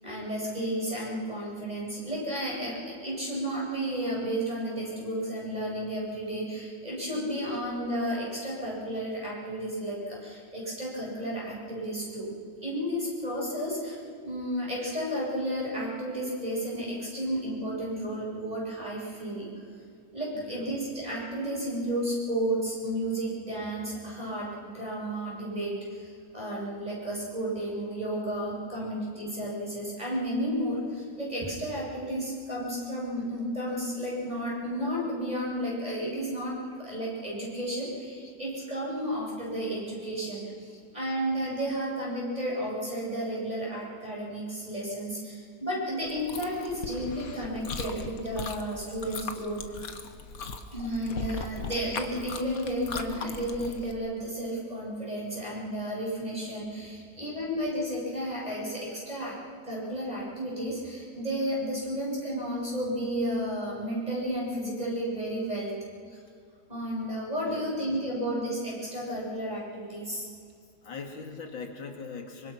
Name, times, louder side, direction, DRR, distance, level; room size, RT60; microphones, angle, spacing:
voice 1, 0.0-12.3 12.6-14.0 14.2-19.5 20.1-49.6 50.7-59.4 59.6-65.7 66.1-66.2 66.7-70.3, equal, 20° right, -5 dB, 7.4 m, -32 dB
voice 2, 20.3-20.7 28.8-28.9 29.2-29.5 40.7-40.8 52.5-52.6 56.9-57.0 57.3-57.4 61.4-61.5 67.4-67.8 70.8-72.5, left 4 dB, 80° left, 3 dB, 3.1 m, -43 dB
Chewing mastication, 46.1-53.9, left 4 dB, 50° left, 1.6 m, -39 dB
25.5 x 24.5 x 6.0 m, 2.1 s
omnidirectional pair, 2.1 m